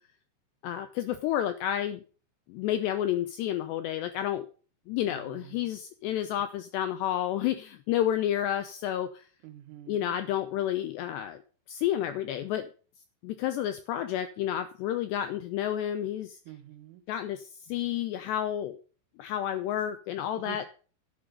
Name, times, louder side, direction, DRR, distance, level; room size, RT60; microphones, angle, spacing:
voice 1, 0.6-2.0 2.5-4.5 4.9-9.3 9.9-11.4 11.7-12.7 13.2-16.4 17.1-18.8 19.2-20.7, left 11 dB, 80° left, 10 dB, 2.5 m, -30 dB
voice 2, 5.1-5.7 9.4-10.2 16.5-17.0 20.4-20.7, right 12 dB, 80° right, 9 dB, 4.0 m, -47 dB
11.0 x 10.0 x 5.3 m, 0.38 s
omnidirectional pair, 5.8 m